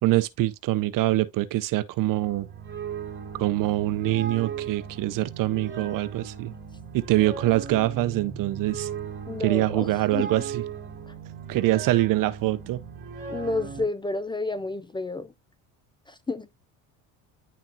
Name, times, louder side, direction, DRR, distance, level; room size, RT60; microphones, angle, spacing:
voice 1, 0.0-2.5 3.4-6.5 6.9-8.9 9.4-10.6 11.5-12.8, right 16 dB, 60° right, 0.7 m, -24 dB
sound 1, 2.1-13.8, right 6 dB, 30° right, 2.4 m, -38 dB
voice 2, 9.3-10.4 13.3-15.3 16.1-16.5, left 2 dB, 15° left, 0.5 m, -31 dB
10.5 x 3.5 x 2.6 m
supercardioid pair, 90°, 37 cm